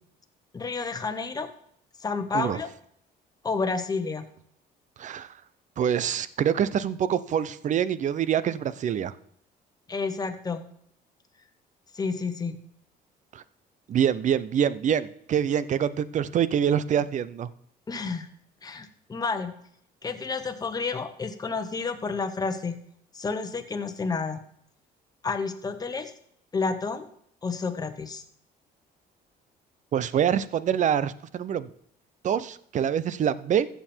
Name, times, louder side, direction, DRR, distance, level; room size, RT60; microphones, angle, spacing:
voice 1, 0.5-1.5 2.0-2.7 3.4-4.2 9.9-10.6 11.9-12.6 17.9-18.3 18.6-19.5 20.0-22.8 23.1-24.4 25.2-26.1 26.5-27.1 27.4-28.2, left 4 dB, 20° left, 7 dB, 1.2 m, -30 dB
voice 2, 5.0-5.3 5.8-9.1 13.3-13.4 13.9-17.5 29.9-31.7 32.2-33.7, right 9 dB, 45° right, 17 dB, 0.7 m, -25 dB
14.5 x 7.0 x 4.4 m, 0.68 s
cardioid pair, 110°, 17 cm